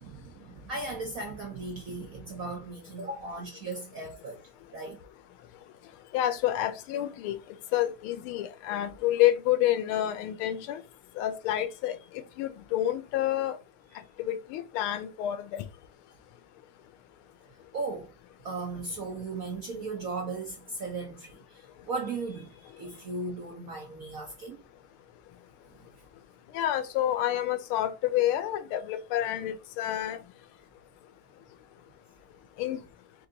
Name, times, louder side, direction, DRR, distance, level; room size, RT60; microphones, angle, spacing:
voice 1, 0.0-4.4 4.7-5.0 17.7-18.1 18.4-24.6, right 3 dB, 65° right, 0.8 m, -37 dB
voice 2, 6.1-7.4 7.7-10.8 11.2-12.0 12.4-13.6 14.2-15.6 26.5-30.2 32.6-32.8, left 12 dB, 80° left, 1.4 m, -28 dB
4.6 x 2.5 x 3.8 m
omnidirectional pair, 2.4 m